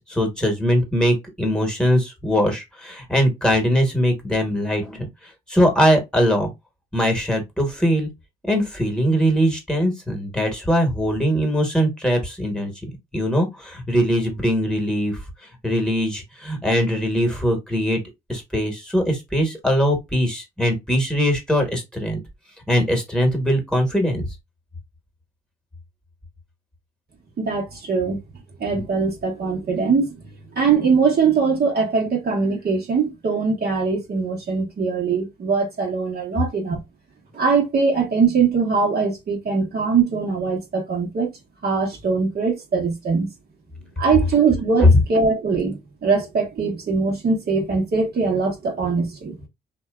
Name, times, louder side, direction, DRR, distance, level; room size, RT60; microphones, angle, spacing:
voice 1, 0.0-5.1 5.5-6.5 6.9-8.1 8.4-12.7 13.1-15.2 15.6-18.0 18.3-22.2 22.7-24.2 44.8-45.0, equal, 5° left, 1.2 m, -21 dB
voice 2, 27.4-28.2 28.6-30.2 30.5-36.8 37.3-41.3 41.6-43.3 44.0-49.4, right 5 dB, 50° right, 0.9 m, -21 dB
2.7 x 2.2 x 2.2 m
supercardioid pair, 60°, 20 cm